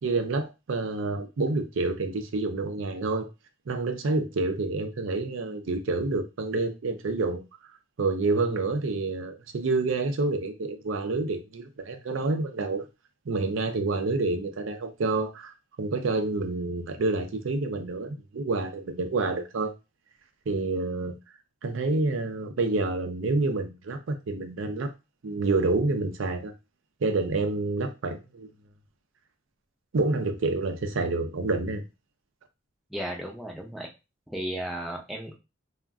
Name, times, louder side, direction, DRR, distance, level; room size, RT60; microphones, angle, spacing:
voice 1, 0.0-3.3 3.7-7.4 8.0-12.8 13.3-19.7 20.5-21.2 21.6-24.9 25.2-26.5 27.0-28.5 29.9-31.8, right 3 dB, 75° right, 0.5 m, -28 dB
voice 2, 32.9-33.9 34.3-35.4, right 1 dB, ahead, 0.5 m, -34 dB
2.4 x 2.1 x 3.5 m
head